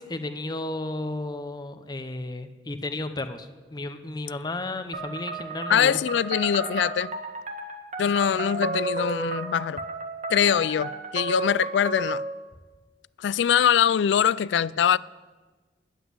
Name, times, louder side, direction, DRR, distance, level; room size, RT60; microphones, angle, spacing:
voice 1, 0.0-6.0, left 2 dB, 25° left, 0.7 m, -33 dB
sound 1, 4.9-12.3, right 2 dB, 45° right, 1.6 m, -33 dB
voice 2, 5.7-7.1 8.0-9.8 10.3-12.2 13.2-15.0, left 8 dB, 85° left, 0.3 m, -23 dB
10.0 x 8.1 x 9.6 m
head